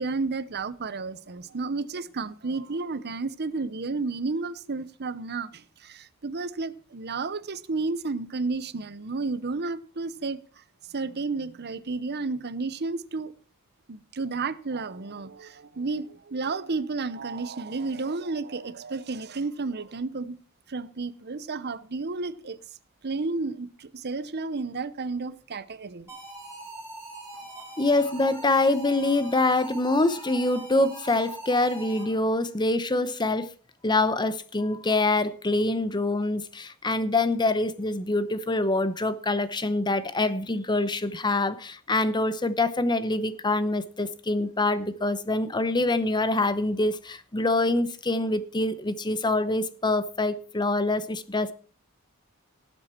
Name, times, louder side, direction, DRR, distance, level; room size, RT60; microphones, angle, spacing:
voice 1, 0.0-10.4 10.9-13.3 13.9-20.4 20.7-22.6 23.0-26.1, right 3 dB, 50° right, 0.8 m, -32 dB
sound 1, 26.1-32.4, right 2 dB, 10° right, 6.0 m, -42 dB
voice 2, 27.8-33.5 33.8-51.5, left 2 dB, 20° left, 0.8 m, -25 dB
18.5 x 8.0 x 4.4 m
head